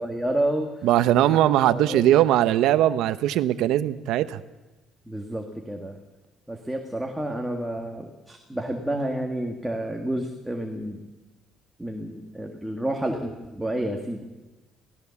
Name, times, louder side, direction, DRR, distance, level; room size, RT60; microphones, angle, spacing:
voice 1, 0.0-1.3 1.7-2.1 5.1-6.0 6.5-11.1 11.8-14.2, right 1 dB, 5° right, 2 dB, 1.7 m, -30 dB
voice 2, 0.8-4.4, right 12 dB, 80° right, 13 dB, 0.9 m, -20 dB
23.0 x 17.0 x 7.1 m, 1.1 s
cardioid pair, 160°, 0 cm